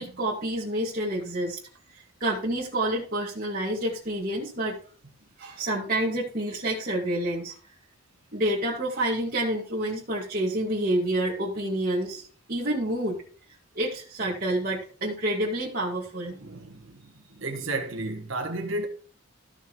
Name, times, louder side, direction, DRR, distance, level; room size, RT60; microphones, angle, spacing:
voice 1, 0.0-1.6 1.9-4.8 5.4-7.5 8.3-13.2 13.8-16.3, right 1 dB, 45° right, 2.2 m, -28 dB
voice 2, 16.4-17.0 17.4-18.9, right 2 dB, 70° right, 1.5 m, -32 dB
14.0 x 6.7 x 3.2 m
head